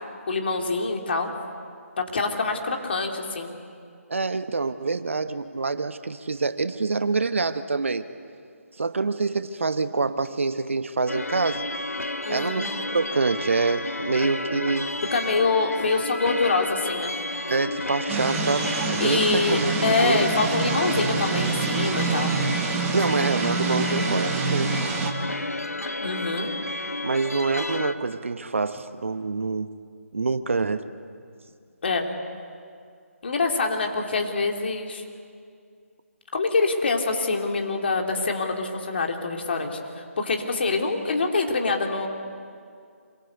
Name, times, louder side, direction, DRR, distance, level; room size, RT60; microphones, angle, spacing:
voice 1, 0.3-1.3 2.0-3.5 12.2-12.6 15.1-17.1 19.0-22.3 26.0-26.5 31.8-32.1 33.2-35.0 36.3-39.8 40.2-42.1, left 3 dB, 45° left, 2 dB, 3.1 m, -25 dB
voice 2, 4.1-8.0 8.8-11.7 12.3-14.9 17.5-20.3 22.9-24.8 27.0-29.7 30.1-30.9, right 4 dB, 55° right, 11 dB, 1.0 m, -26 dB
sound 1, 11.1-27.9, left 2 dB, 80° left, 1.3 m, -32 dB
sound 2, 18.1-25.1, right 4 dB, 15° right, 1.7 m, -27 dB
27.0 x 22.5 x 8.3 m, 2.3 s
figure-of-eight pair, 150°, 8 cm